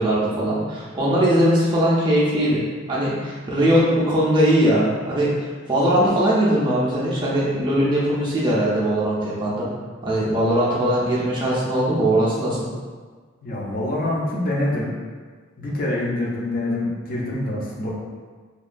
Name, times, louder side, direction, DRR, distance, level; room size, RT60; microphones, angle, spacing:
voice 1, 0.0-2.6 2.9-5.3 5.7-9.7 10.0-12.6, right 1 dB, 25° right, -7 dB, 0.4 m, -20 dB
voice 2, 13.4-15.0 15.6-17.9, left 1 dB, 45° left, -4 dB, 0.5 m, -25 dB
2.9 x 2.2 x 2.4 m, 1.5 s
head